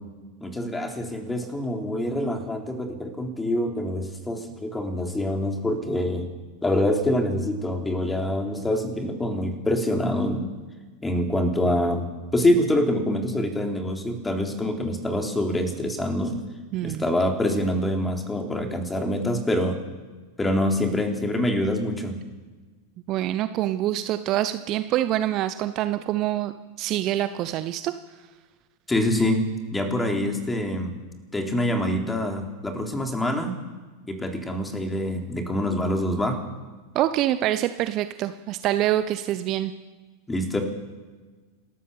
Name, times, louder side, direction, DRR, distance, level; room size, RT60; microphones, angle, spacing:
voice 1, 0.4-6.3 6.6-10.5 11.0-16.4 16.8-19.8 20.4-22.1 28.9-29.4 29.7-30.9 31.3-33.6 34.1-36.4 40.3-40.6, left 1 dB, 10° left, 3 dB, 3.6 m, -25 dB
voice 2, 16.7-17.1 23.1-26.5 26.8-27.9 36.9-39.7, right 13 dB, 35° right, 12 dB, 0.8 m, -25 dB
29.5 x 13.0 x 7.0 m, 1.4 s
figure-of-eight pair, 90°, 0 cm